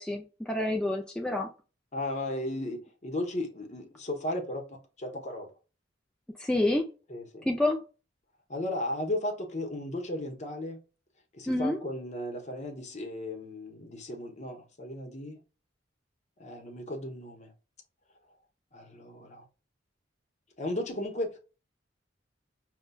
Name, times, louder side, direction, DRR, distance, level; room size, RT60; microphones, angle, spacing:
voice 1, 0.0-1.5 6.4-6.9 7.5-7.8 11.5-11.8, left 1 dB, 5° left, 0.3 m, -28 dB
voice 2, 1.9-5.5 7.1-7.5 8.5-10.8 11.3-15.4 16.4-17.5 18.7-19.4 20.6-21.4, left 1 dB, 40° left, 0.8 m, -35 dB
5.3 x 2.1 x 2.2 m
head